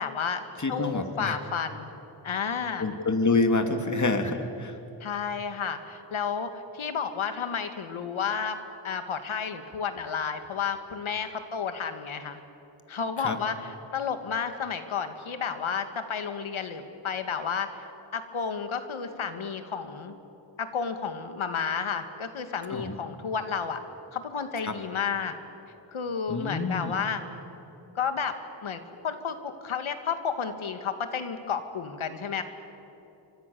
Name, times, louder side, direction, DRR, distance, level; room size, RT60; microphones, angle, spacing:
voice 1, 0.0-0.4 0.7-1.9 2.2-3.0 5.0-8.6 8.8-12.4 12.9-17.8 18.1-20.1 20.6-23.8 24.1-25.3 25.9-27.2 27.9-28.4 28.6-32.4, left 6 dB, 70° left, 8 dB, 2.3 m, -31 dB
voice 2, 0.6-1.4 2.8-4.7 13.2-13.4 22.7-22.9 24.6-24.7 26.3-26.9, left 3 dB, 35° left, 6 dB, 2.7 m, -27 dB
29.5 x 24.5 x 7.1 m, 2.9 s
cardioid pair, 75°, 50 cm